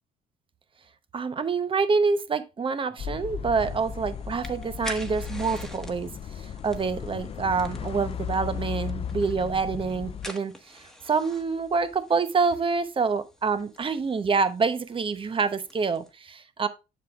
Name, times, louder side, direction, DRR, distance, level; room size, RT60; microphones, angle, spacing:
voice 1, 1.1-16.7, right 5 dB, 30° right, 0.8 m, -27 dB
sound 1, 3.0-10.3, left 8 dB, 35° left, 0.4 m, -35 dB
sound 2, 3.6-16.1, left 1 dB, 5° left, 1.3 m, -46 dB
7.3 x 7.2 x 2.4 m
cardioid pair, 95°, 17 cm